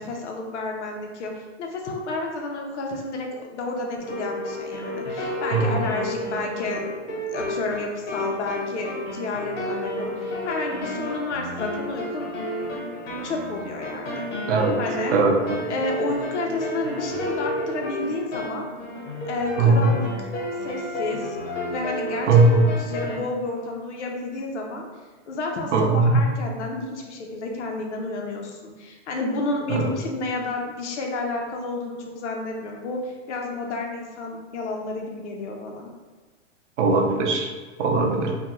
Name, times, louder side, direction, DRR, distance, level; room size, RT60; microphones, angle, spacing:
voice 1, 0.0-1.3 1.6-12.3 13.2-14.2 14.8-15.2 15.7-18.7 19.3-20.3 20.6-21.4 21.7-24.8 25.3-35.9, left 3 dB, 75° left, 1 dB, 0.6 m, -31 dB
sound 1, 4.0-23.2, equal, 55° left, 1.1 m, -31 dB
voice 2, 14.5-14.8 15.1-15.3 19.6-19.9 22.3-22.9 25.7-26.2 29.7-29.8 36.8-37.5 37.8-38.3, right 3 dB, 80° right, 2 dB, 0.6 m, -19 dB
2.4 x 2.2 x 2.9 m, 1.3 s
hypercardioid pair, 165°, 35 cm